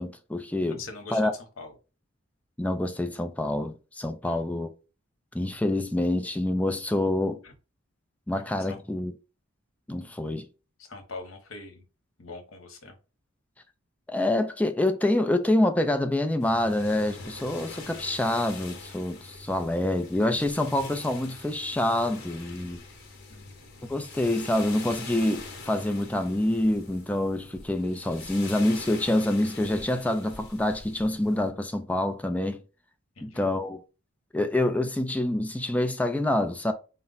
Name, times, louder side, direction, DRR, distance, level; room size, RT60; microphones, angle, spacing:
voice 1, 0.0-0.8 1.1-1.3 2.6-4.7 5.3-7.4 8.3-9.1 9.9-10.5 14.1-22.8 23.9-32.6 33.2-33.8 34.3-36.7, left 1 dB, 5° left, 0.4 m, -26 dB
voice 2, 0.8-1.7 4.2-4.6 7.4-7.5 8.6-8.8 10.8-11.8 12.2-12.9 23.3-23.6 33.2-33.4, left 3 dB, 75° left, 1.0 m, -43 dB
sound 1, 16.4-31.5, left 4 dB, 55° left, 1.1 m, -44 dB
4.2 x 2.3 x 3.9 m
head